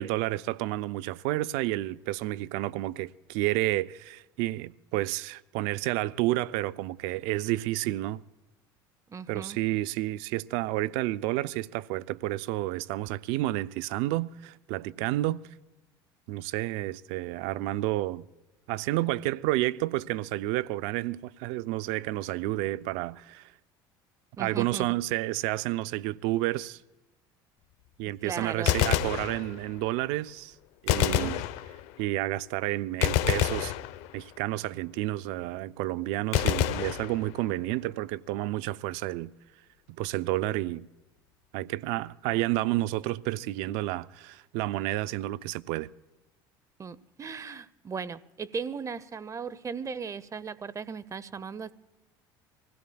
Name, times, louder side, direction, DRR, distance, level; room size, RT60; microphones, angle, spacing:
voice 1, 0.0-8.2 9.3-15.4 16.3-18.3 18.7-23.5 24.4-26.8 28.0-30.5 30.8-31.5 32.0-33.7 34.1-39.3 39.9-40.9 41.5-45.9, right 17 dB, 70° right, 0.4 m, -30 dB
voice 2, 9.1-9.6 24.4-24.9 28.2-28.8 30.9-31.4 46.8-51.7, right 5 dB, 25° right, 0.8 m, -37 dB
Gunshot gunfire, 28.5-29.9 30.9-32.1 33.0-34.4 36.3-37.7, left 12 dB, 70° left, 0.7 m, -28 dB
25.5 x 16.5 x 2.3 m
hypercardioid pair, 80°, 12 cm